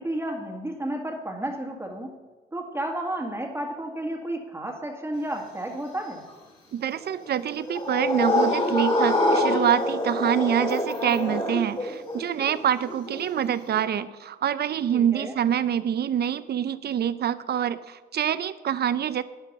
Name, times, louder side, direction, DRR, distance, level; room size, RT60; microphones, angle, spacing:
voice 1, 0.0-2.1 2.5-6.2 14.9-15.3, right 1 dB, 10° right, 1 dB, 1.8 m, -32 dB
voice 2, 6.7-19.2, right 9 dB, 55° right, 15 dB, 0.7 m, -26 dB
sound 1, 7.0-13.8, left 1 dB, 25° left, 2.9 m, -25 dB
11.5 x 9.9 x 5.4 m, 1.2 s
cardioid pair, 90°, 20 cm